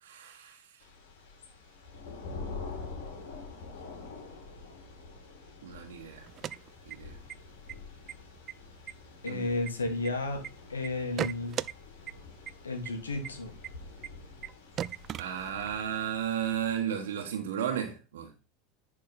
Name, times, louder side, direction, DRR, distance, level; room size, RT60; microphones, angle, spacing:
voice 1, 0.0-0.8 5.6-6.3 6.8-7.1 9.3-9.4 15.2-18.3, right 9 dB, 70° right, 1.4 m, -34 dB
Thunder / Rain, 0.8-16.8, left 4 dB, 65° left, 2.7 m, -46 dB
sound 1, 6.2-7.3 7.7-7.8 8.1-8.5 8.9-10.5 10.8-11.7 12.1-12.2 12.5-12.6 12.8-12.9 13.2-13.3 13.6-13.7 14.0-14.1 14.4-14.5 14.8-15.8, right 10 dB, 40° right, 0.4 m, -37 dB
voice 2, 9.2-10.4 10.7-11.5 12.6-13.5, left 2 dB, 80° left, 2.0 m, -32 dB
10.5 x 4.6 x 4.2 m
figure-of-eight pair, 80°, 0 cm